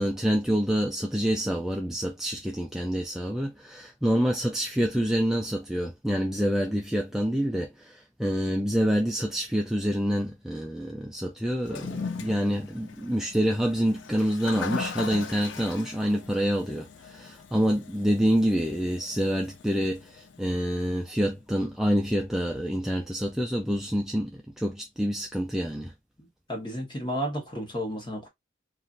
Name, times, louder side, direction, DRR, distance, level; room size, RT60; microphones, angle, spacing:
voice 1, 0.0-25.9, equal, 5° right, 0.3 m, -27 dB
Toilet flush, 11.6-20.9, left 5 dB, 75° left, 0.5 m, -39 dB
voice 2, 26.2-28.3, equal, 25° left, 1.1 m, -33 dB
3.1 x 2.5 x 2.4 m
head